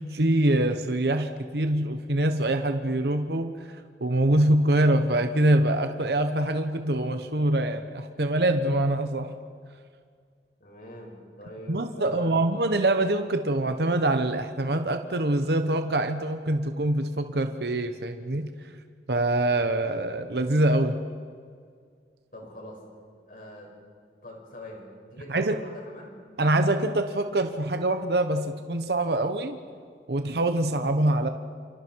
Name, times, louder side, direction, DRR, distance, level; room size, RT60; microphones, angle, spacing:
voice 1, 0.0-9.3 11.7-18.5 19.1-21.0 25.3-25.6 26.4-29.6 30.1-31.3, right 1 dB, 65° right, 7 dB, 1.1 m, -24 dB
voice 2, 10.6-12.3 22.3-22.8 23.3-23.7 24.2-26.2, equal, 50° left, 0 dB, 6.0 m, -43 dB
29.0 x 27.5 x 4.7 m, 2.1 s
head